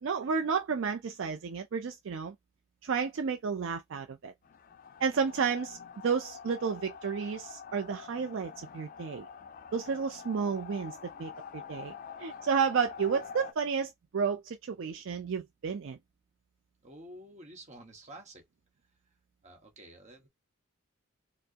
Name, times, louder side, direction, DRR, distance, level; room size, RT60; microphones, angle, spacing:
voice 1, 0.0-2.3 2.8-4.3 5.0-5.8 6.0-9.3 9.7-11.9 12.2-16.0, right 6 dB, 60° right, 0.4 m, -31 dB
sound 1, 4.4-13.5, left 7 dB, 40° left, 0.3 m, -46 dB
voice 2, 16.8-18.5 19.4-20.3, right 1 dB, 30° right, 1.1 m, -50 dB
4.4 x 2.0 x 2.7 m
head